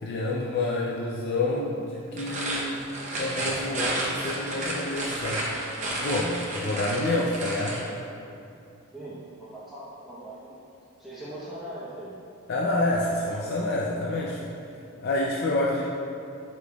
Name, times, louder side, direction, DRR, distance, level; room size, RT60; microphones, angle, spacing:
voice 1, 0.0-2.8 3.2-5.4 6.0-7.8 12.5-14.5 15.0-15.8, left 2 dB, 50° left, -4 dB, 0.4 m, -28 dB
sound 1, 2.1-7.9, right 2 dB, 35° right, 0.8 m, -31 dB
voice 2, 8.9-10.6 11.0-12.2, right 1 dB, ahead, -12 dB, 0.8 m, -40 dB
8.0 x 5.1 x 2.3 m, 2.6 s
head